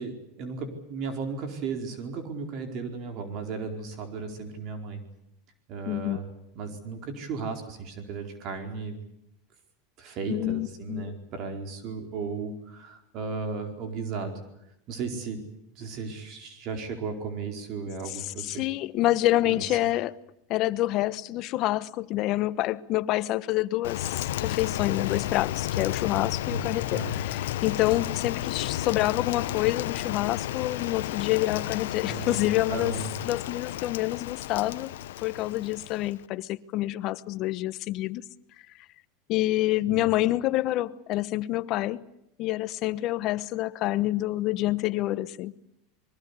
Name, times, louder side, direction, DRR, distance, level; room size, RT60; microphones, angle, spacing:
voice 1, 0.0-5.0 5.7-6.3 6.6-9.0 10.0-14.4 14.9-15.4 15.8-18.6 19.4-19.8 26.5-27.1 32.1-33.1 39.9-40.0, right 4 dB, 50° right, 4.6 m, -35 dB
voice 2, 5.9-6.2 10.3-11.2 18.1-20.2 20.5-34.9 35.2-38.2 39.3-42.0 42.4-45.5, left 16 dB, 50° left, 1.2 m, -27 dB
Rain, 23.8-36.3, left 13 dB, 80° left, 0.9 m, -32 dB
24.5 x 23.0 x 8.5 m
supercardioid pair, 115°, 0 cm